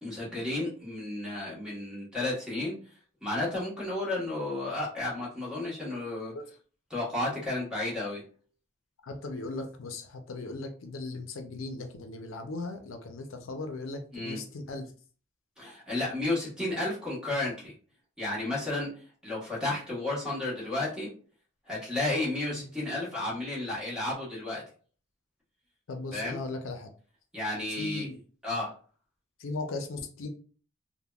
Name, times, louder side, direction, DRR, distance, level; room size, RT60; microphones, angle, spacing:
voice 1, 0.0-2.7 3.2-6.3 6.9-8.2 14.1-14.4 15.6-17.7 18.2-18.9 19.2-21.1 21.7-24.6 26.1-26.4 27.3-28.1 28.4-28.7, left 2 dB, 5° right, -6 dB, 1.1 m, -32 dB
voice 2, 9.1-14.9 22.5-22.6 25.9-26.9 27.8-28.2 29.4-30.3, left 2 dB, 75° left, 5 dB, 0.5 m, -37 dB
3.4 x 2.1 x 2.3 m, 0.40 s
head